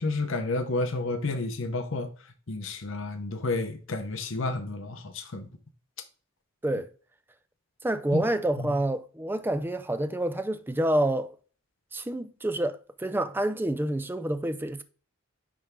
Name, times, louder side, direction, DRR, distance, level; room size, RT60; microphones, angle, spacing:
voice 1, 0.0-2.1 2.5-5.5 8.1-8.2 8.6-8.7, left 2 dB, 65° left, 0.9 m, -31 dB
voice 2, 7.8-11.4 11.9-14.8, right 1 dB, 10° right, 0.5 m, -28 dB
10.0 x 3.4 x 3.7 m
head